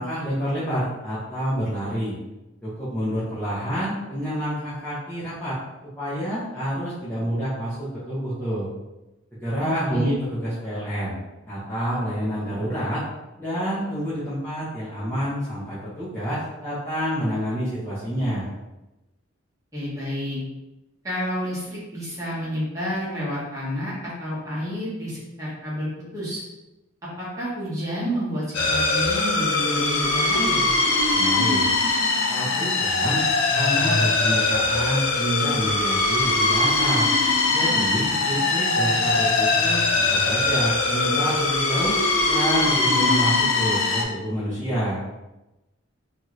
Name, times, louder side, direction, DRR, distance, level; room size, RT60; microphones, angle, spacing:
voice 1, 0.0-2.1 2.6-5.6 6.0-8.7 9.4-11.1 11.5-13.0 13.4-18.5 31.1-31.7 32.3-33.2 33.5-37.1 37.5-41.9 42.2-45.0, equal, 10° left, -12 dB, 0.7 m, -28 dB
voice 2, 9.6-10.2 19.7-20.4 21.0-25.9 26.1-26.4 27.2-30.7 38.0-38.5, equal, 15° right, -9 dB, 1.1 m, -30 dB
sound 1, 28.5-44.0, left 3 dB, 80° left, 0.5 m, -21 dB
2.9 x 2.4 x 3.0 m, 1.0 s
head